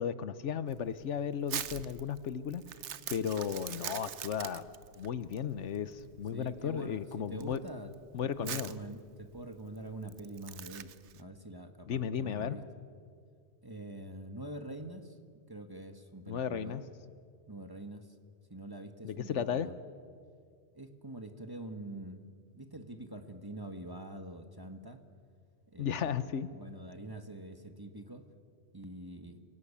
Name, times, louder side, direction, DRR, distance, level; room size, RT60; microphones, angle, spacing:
voice 1, 0.0-2.6 3.1-4.6 5.0-7.6 8.1-8.7 11.9-12.6 16.3-16.8 19.0-19.7 25.8-26.5, left 8 dB, 80° left, 14 dB, 1.2 m, -34 dB
Crumpling crinkling, 0.7-11.2, right 10 dB, 75° right, 1.1 m, -44 dB
voice 2, 6.3-7.9 8.4-12.6 13.6-15.2 15.5-16.9 17.5-18.2 18.5-19.8 20.7-25.0 25.7-28.3 28.7-29.4, right 1 dB, 20° right, 7 dB, 1.4 m, -45 dB
26.5 x 17.5 x 8.5 m, 2.1 s
omnidirectional pair, 1.2 m